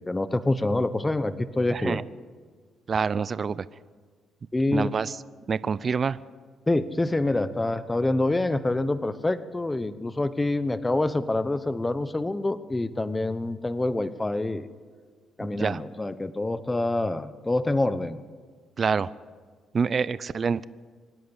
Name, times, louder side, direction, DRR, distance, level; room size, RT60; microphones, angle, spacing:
voice 1, 0.0-2.0 4.5-4.9 6.7-14.7 15.4-18.3, left 2 dB, 15° left, 13 dB, 0.9 m, -26 dB
voice 2, 1.7-2.0 2.9-3.6 4.7-5.2 5.5-6.2 15.4-15.8 18.8-19.1 19.7-20.7, right 5 dB, 40° right, 17 dB, 0.5 m, -26 dB
25.0 x 10.5 x 9.8 m, 1.5 s
cardioid pair, 90°, 0 cm